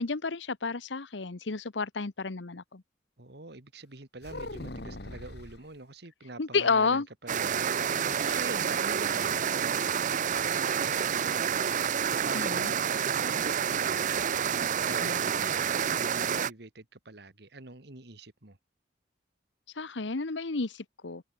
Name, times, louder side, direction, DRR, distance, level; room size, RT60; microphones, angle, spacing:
voice 1, 0.0-2.8 6.4-7.1 8.1-8.4 12.3-12.7 15.0-15.2 19.8-21.2, left 4 dB, 85° left, 1.1 m, -31 dB
voice 2, 3.2-11.8 12.1-18.6, right 2 dB, 65° right, 2.1 m, -45 dB
sound 1, 4.2-5.7 7.4-8.3 8.6-8.7 9.1-9.4, left 1 dB, 65° left, 3.1 m, -42 dB
sound 2, 7.3-16.5, right 8 dB, 45° right, 0.5 m, -28 dB
head